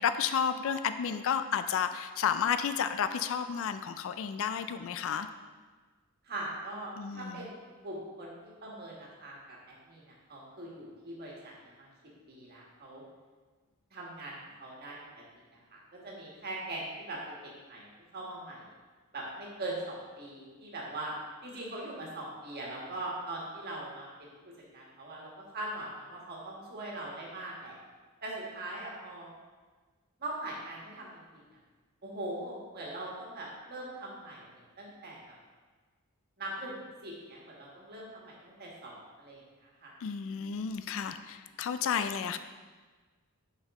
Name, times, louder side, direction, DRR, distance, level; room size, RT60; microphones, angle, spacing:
voice 1, 0.0-5.3 7.0-7.5 40.0-42.4, left 7 dB, 60° left, 10 dB, 0.3 m, -31 dB
voice 2, 6.2-11.9 12.3-13.0 13.9-15.2 15.7-17.9 18.1-18.7 19.1-21.1 21.4-24.3 24.7-27.8 28.2-29.3 30.2-31.4 32.0-35.3 36.4-39.9, right 1 dB, 45° right, -3 dB, 1.5 m, -41 dB
6.4 x 5.5 x 3.6 m, 1.4 s
head